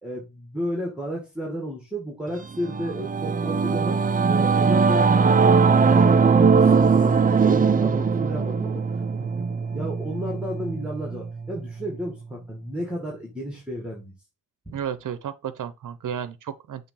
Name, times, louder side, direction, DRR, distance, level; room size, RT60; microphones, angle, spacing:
voice 1, 0.0-4.0 4.3-5.6 6.3-8.8 9.5-14.1 14.7-14.8, equal, 5° right, 1.9 m, -33 dB
Singing / Musical instrument, 2.4-12.1, right 5 dB, 25° right, 0.5 m, -20 dB
voice 2, 14.7-16.9, right 8 dB, 75° right, 0.7 m, -33 dB
6.8 x 3.3 x 5.6 m
wide cardioid pair, 155°, 32 cm